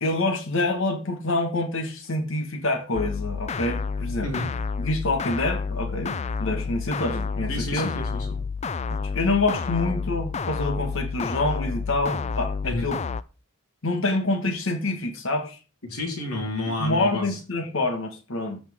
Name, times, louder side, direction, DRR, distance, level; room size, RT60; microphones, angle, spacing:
voice 1, 0.0-4.3 4.8-7.9 9.1-13.0 13.8-15.6 16.8-18.6, left 2 dB, 60° left, 1.5 m, -26 dB
sound 1, 3.0-13.2, left 5 dB, 30° left, 0.4 m, -30 dB
voice 2, 7.5-8.3 12.6-12.9 15.8-17.4, left 2 dB, 90° left, 3.9 m, -30 dB
15.0 x 6.0 x 3.6 m
head